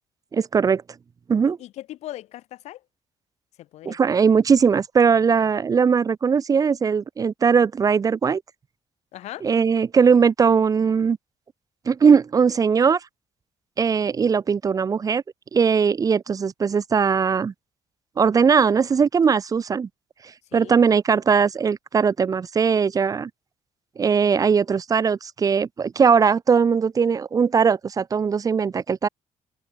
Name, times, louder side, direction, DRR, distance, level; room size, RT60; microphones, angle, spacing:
voice 1, 0.3-0.8 1.3-1.6 3.8-8.4 9.4-11.2 11.9-13.0 13.8-15.2 15.5-17.5 18.2-19.9 20.5-23.3 24.0-29.1, right 6 dB, 35° right, 0.9 m, -19 dB
voice 2, 1.4-2.8 3.6-4.2 9.1-9.5 20.5-20.8, left 14 dB, 85° left, 3.8 m, -39 dB
cardioid pair, 125°, 11 cm